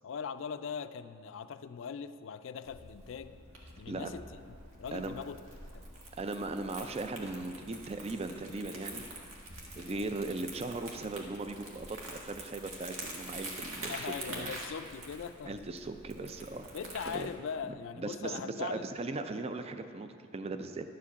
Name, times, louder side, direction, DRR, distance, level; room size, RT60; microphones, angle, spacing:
voice 1, 0.0-3.4 3.8-4.2 4.8-5.4 10.0-10.2 13.8-15.6 16.7-18.8, left 6 dB, 65° left, 11 dB, 0.4 m, -40 dB
Crumpling crinkling, 2.6-17.3, right 2 dB, 85° right, 1.6 m, -46 dB
voice 2, 6.2-9.0 9.8-14.5 15.4-16.7 17.1-17.3 17.7-20.8, right 2 dB, 30° right, 8 dB, 0.4 m, -38 dB
11.5 x 5.0 x 7.0 m, 2.2 s
head